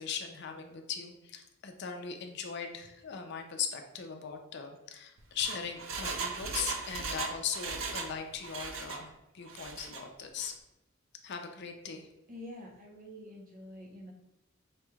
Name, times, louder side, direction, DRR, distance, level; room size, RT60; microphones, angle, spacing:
voice 1, 0.0-10.5 11.2-12.1, left 7 dB, 60° left, 5 dB, 0.5 m, -39 dB
Engine, 5.2-8.2 8.4-9.0 9.5-10.0 10.4-10.5, right 4 dB, 75° right, 0.5 m, -38 dB
voice 2, 12.3-14.1, left 1 dB, 45° right, 0 dB, 0.8 m, -47 dB
5.1 x 3.2 x 2.3 m, 0.95 s
head